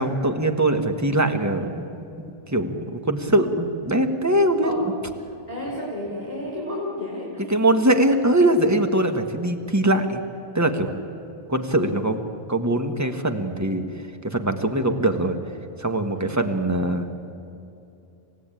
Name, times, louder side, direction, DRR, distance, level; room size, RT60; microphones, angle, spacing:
voice 1, 0.0-2.0 2.5-4.7 7.5-10.2 10.5-10.9 11.5-12.2 12.5-15.4 15.8-17.1, right 1 dB, 15° right, 6 dB, 1.5 m, -22 dB
voice 2, 5.5-7.7 16.1-16.3, left 1 dB, 30° left, -4 dB, 4.8 m, -32 dB
28.0 x 16.0 x 9.1 m, 2.7 s
omnidirectional pair, 1.1 m